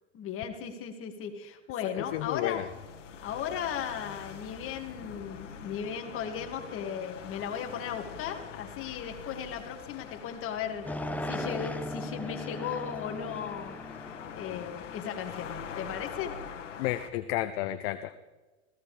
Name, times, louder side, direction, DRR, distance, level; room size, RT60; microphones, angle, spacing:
voice 1, 0.1-2.6 3.2-10.9 11.2-13.8 14.0-14.1 14.3-16.3, left 8 dB, 35° left, 4 dB, 2.3 m, -36 dB
sound 1, 2.0-17.1, left 7 dB, 90° left, 1.7 m, -44 dB
voice 2, 2.0-2.7 16.8-18.2, left 14 dB, 55° left, 11 dB, 0.8 m, -32 dB
sound 2, 10.9-15.2, left 1 dB, 5° left, 0.9 m, -38 dB
19.0 x 16.0 x 3.4 m, 1.2 s
hypercardioid pair, 115°, 36 cm